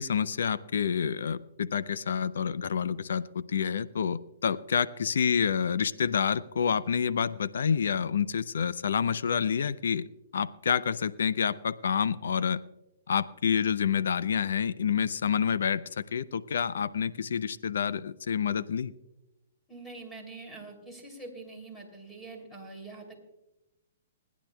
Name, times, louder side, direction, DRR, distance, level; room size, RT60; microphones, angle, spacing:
voice 1, 0.0-12.6 13.1-15.8 16.1-18.9, left 7 dB, 80° left, 16 dB, 0.5 m, -28 dB
voice 2, 19.7-23.2, right 3 dB, 10° left, 3 dB, 2.9 m, -44 dB
28.5 x 10.0 x 2.3 m, 0.97 s
hypercardioid pair, 145°, 0 cm